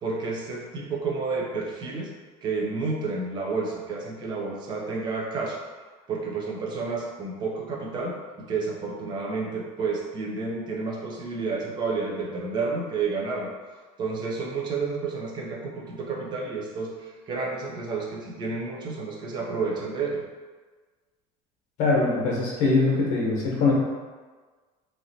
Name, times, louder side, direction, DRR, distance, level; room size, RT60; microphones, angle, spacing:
voice 1, 0.0-2.1 2.4-5.6 6.1-8.1 8.5-13.5 14.0-20.2, right 4 dB, 30° right, -1 dB, 0.5 m, -30 dB
voice 2, 21.8-23.7, left 3 dB, 55° left, -3 dB, 1.0 m, -22 dB
3.0 x 2.7 x 2.7 m, 1.4 s
cardioid pair, 160°, 14 cm